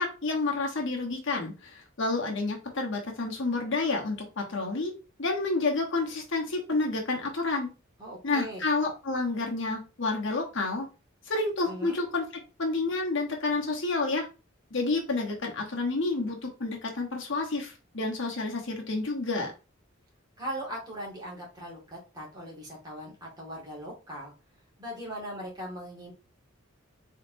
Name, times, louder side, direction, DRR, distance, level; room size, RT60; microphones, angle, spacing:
voice 1, 0.0-4.9 5.2-7.7 8.2-10.9 11.3-12.2 12.6-14.3 14.7-19.5, left 3 dB, 65° left, 1 dB, 1.1 m, -29 dB
voice 2, 8.0-8.6 11.6-12.0 20.4-24.3 24.8-26.1, equal, 20° right, -3 dB, 2.0 m, -39 dB
4.1 x 4.1 x 2.6 m, 0.31 s
head